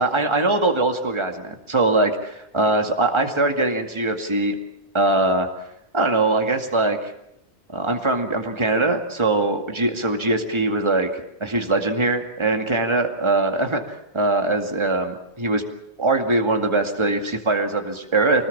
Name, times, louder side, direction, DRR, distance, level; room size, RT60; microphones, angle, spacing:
voice 1, 0.0-4.6 4.9-5.5 5.9-7.1 7.7-15.6 16.0-18.5, right 2 dB, 25° right, 4 dB, 2.2 m, -22 dB
26.0 x 20.0 x 7.3 m, 0.80 s
omnidirectional pair, 1.1 m